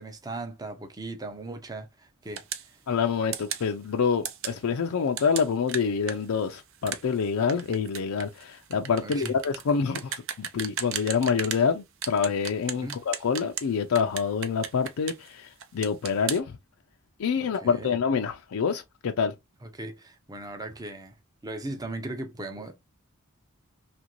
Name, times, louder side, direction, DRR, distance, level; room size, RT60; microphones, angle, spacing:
voice 1, 0.0-2.8 9.0-9.3 12.8-13.0 17.4-17.9 19.6-21.2 21.4-22.8, right 2 dB, 20° right, 0.5 m, -38 dB
sound 1, 2.4-2.7 3.3-3.7 4.3-4.6 5.2-11.7 12.0-13.7 14.0-15.3 15.6-16.4, right 9 dB, 65° right, 0.5 m, -35 dB
voice 2, 2.9-16.6 17.2-19.3, left 6 dB, 85° left, 0.4 m, -27 dB
2.9 x 2.5 x 2.9 m
head